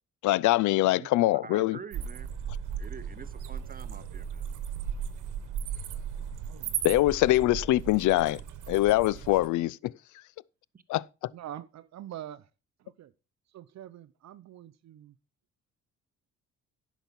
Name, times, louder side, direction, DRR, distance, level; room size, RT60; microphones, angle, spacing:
voice 1, 0.2-1.8 6.8-8.4 8.7-9.9 10.9-11.0, left 16 dB, 75° left, 0.5 m, -23 dB
voice 2, 1.4-2.3 2.8-4.4, right 5 dB, 30° right, 1.0 m, -46 dB
sound 1, 1.9-9.5, right 8 dB, 80° right, 1.1 m, -36 dB
voice 3, 6.5-7.1 11.3-12.5 12.8-13.1 13.5-15.1, right 11 dB, 65° right, 0.7 m, -45 dB
10.5 x 6.1 x 5.3 m
cardioid pair, 90°, 30 cm